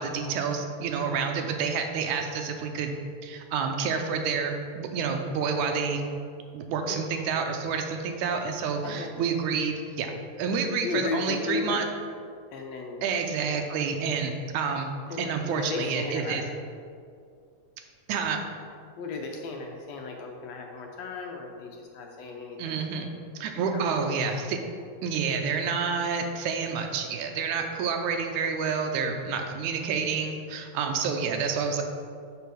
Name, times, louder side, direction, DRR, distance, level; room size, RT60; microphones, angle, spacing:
voice 1, 0.0-2.9 3.2-6.0 6.5-10.1 10.4-11.9 13.0-14.9 15.2-16.4 18.1-18.4 22.6-23.1 23.4-24.6 25.0-31.8, right 5 dB, 85° right, 4 dB, 2.2 m, -29 dB
voice 2, 10.8-11.8 12.5-13.5 13.8-13.9 15.1-16.6 19.0-23.2 23.5-24.2, left 4 dB, 75° left, 1 dB, 1.6 m, -36 dB
6.9 x 5.5 x 6.2 m, 2.3 s
omnidirectional pair, 3.4 m